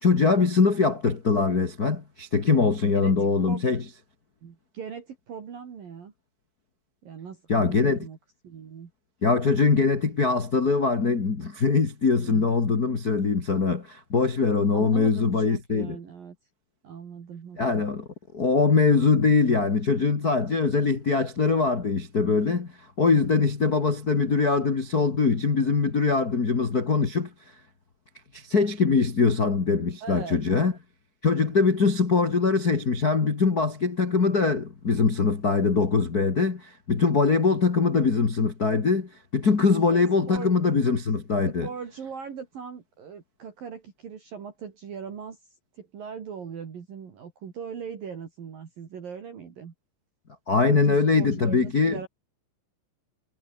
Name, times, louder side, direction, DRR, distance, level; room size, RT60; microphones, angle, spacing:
voice 1, 0.0-3.8 7.5-8.0 9.2-15.9 17.6-18.1 18.3-22.7 23.0-27.3 28.3-30.7 31.2-41.7 50.5-52.0, left 4 dB, 75° left, 0.8 m, -22 dB
voice 2, 2.9-3.6 4.4-6.1 7.0-8.2 8.4-8.9 12.2-12.5 14.7-16.4 16.8-17.9 30.0-30.4 31.4-31.6 39.9-40.5 41.5-45.4 45.7-49.7 50.7-52.1, right 6 dB, 50° right, 4.4 m, -40 dB
omnidirectional pair, 5.4 m